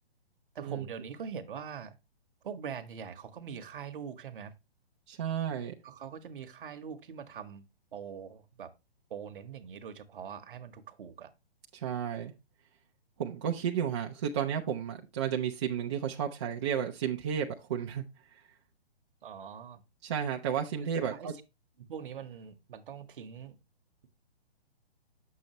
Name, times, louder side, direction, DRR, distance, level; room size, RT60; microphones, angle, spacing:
voice 1, 0.5-2.0 2.4-4.5 5.8-8.7 9.1-11.3 19.2-19.8 21.0-21.3 21.8-23.6, right 7 dB, 55° right, 1.1 m, -43 dB
voice 2, 5.1-5.7 11.7-12.3 13.2-18.0 18.3-18.4 20.0-21.3, right 8 dB, 25° right, 0.6 m, -32 dB
8.2 x 6.7 x 2.9 m
hypercardioid pair, 155°, 32 cm